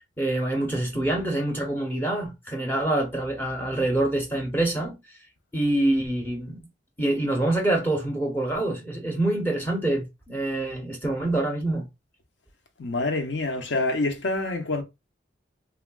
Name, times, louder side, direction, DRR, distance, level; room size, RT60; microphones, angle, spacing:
voice 1, 0.0-5.0 5.5-6.6 7.0-11.9, right 1 dB, 10° left, 0.7 m, -26 dB
voice 2, 12.8-14.8, left 2 dB, 65° left, 0.7 m, -26 dB
3.4 x 2.2 x 2.2 m
head